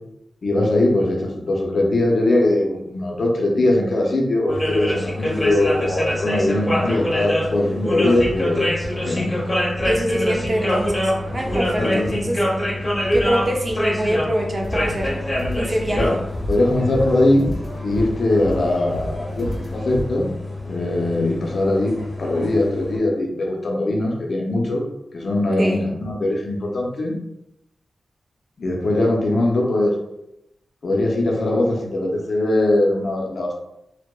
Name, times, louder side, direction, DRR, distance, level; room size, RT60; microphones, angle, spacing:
voice 1, 0.4-9.3 11.8-12.2 15.9-16.1 16.5-17.5 17.8-20.3 20.7-24.9 25.1-27.2 28.6-29.9 30.8-33.5, left 1 dB, 65° left, -1 dB, 0.6 m, -21 dB
sound 1, 4.5-23.0, left 1 dB, 35° left, 0.8 m, -25 dB
sound 2, 8.2-8.4 8.8-8.9 9.8-10.0 10.4-10.6 11.5-11.7 12.0-12.1 13.1-13.3 13.7-13.8 14.7-14.9 15.3-15.4 16.3-16.6 16.9-17.1, equal, 5° left, 0.6 m, -33 dB
voice 2, 9.8-12.4 13.1-15.1 15.5-16.2 25.6-25.8, equal, 40° right, 0 dB, 0.6 m, -24 dB
sound 3, 14.6-20.0, equal, 55° right, 1.4 m, -33 dB
2.7 x 2.0 x 2.2 m, 0.85 s
cardioid pair, 45°, 0 cm